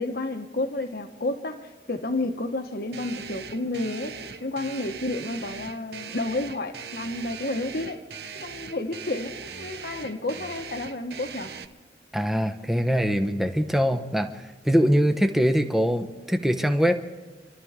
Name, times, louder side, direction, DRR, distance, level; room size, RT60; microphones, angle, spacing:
voice 1, 0.0-8.0 8.4-11.5, left 2 dB, 55° left, 1.3 m, -31 dB
sound 1, 2.9-11.6, right 6 dB, 60° right, 0.9 m, -40 dB
voice 2, 12.1-17.0, equal, ahead, 0.9 m, -23 dB
27.5 x 13.0 x 3.7 m
head